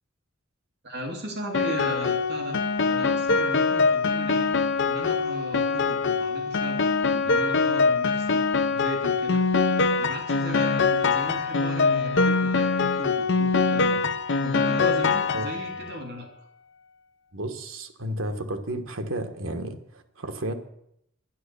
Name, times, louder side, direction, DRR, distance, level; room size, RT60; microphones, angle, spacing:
voice 1, 0.8-2.6 2.8-4.5 4.9-6.8 7.1-8.4 8.7-9.4 9.9-14.0 14.4-16.5, equal, 55° right, 2 dB, 2.5 m, -36 dB
Piano, 1.5-15.9, left 4 dB, 60° left, 0.7 m, -23 dB
voice 2, 17.3-20.5, right 1 dB, 85° right, 6 dB, 1.5 m, -32 dB
11.0 x 10.0 x 6.8 m, 0.76 s
head